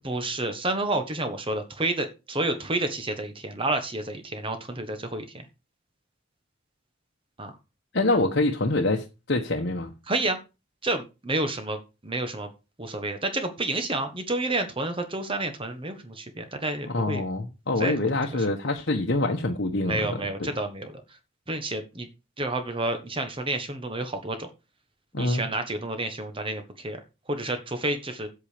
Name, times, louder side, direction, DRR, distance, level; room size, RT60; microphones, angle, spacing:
voice 1, 0.0-5.5 7.4-7.5 10.1-10.4 10.8-12.5 12.8-17.2 17.8-18.1 19.8-21.0 21.5-22.1 22.4-24.5 25.2-27.0 27.3-28.3, right 2 dB, 25° right, 1.3 m, -30 dB
voice 2, 7.9-9.9 16.9-20.5 25.1-25.4, left 2 dB, 60° left, 1.2 m, -25 dB
8.8 x 8.4 x 5.1 m
head